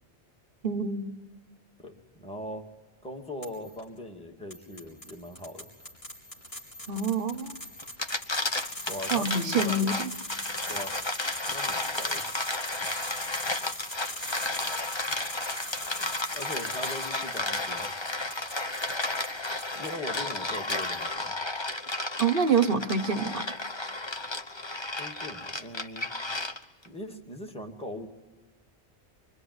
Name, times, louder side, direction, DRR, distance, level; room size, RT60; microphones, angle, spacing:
voice 1, 0.6-1.1 6.9-7.6 9.1-10.1 22.2-23.4, right 4 dB, 55° right, 11 dB, 1.2 m, -26 dB
voice 2, 1.8-2.7 3.0-5.7 8.9-9.9 10.5-10.9 11.5-12.2 16.3-17.9 19.7-21.3 25.0-26.1 26.8-28.1, left 1 dB, 5° left, 2 dB, 2.3 m, -40 dB
sound 1, 3.4-3.8 4.5-19.9 20.3-21.1, equal, 65° left, 4.5 m, -40 dB
sound 2, 7.8-26.9, left 2 dB, 25° left, 1.1 m, -33 dB
26.0 x 24.0 x 9.6 m, 1.1 s
omnidirectional pair, 1.1 m